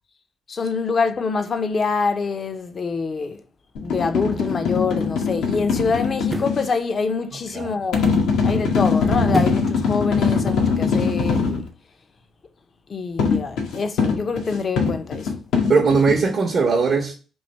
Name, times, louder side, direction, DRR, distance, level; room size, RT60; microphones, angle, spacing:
voice 1, 0.5-3.4 3.8-8.1 8.4-11.7 12.9-15.3, left 4 dB, 40° left, 0.5 m, -25 dB
sound 1, 3.8-6.6 7.9-11.7 13.2-16.2, left 5 dB, 85° left, 0.9 m, -22 dB
sound 2, 6.2-6.7 9.3-9.8 10.2-10.3, right 2 dB, 15° right, 0.4 m, -27 dB
voice 2, 7.3-7.7 15.7-17.1, right 4 dB, 55° right, 0.7 m, -19 dB
3.1 x 2.6 x 4.0 m
cardioid pair, 90°, 0 cm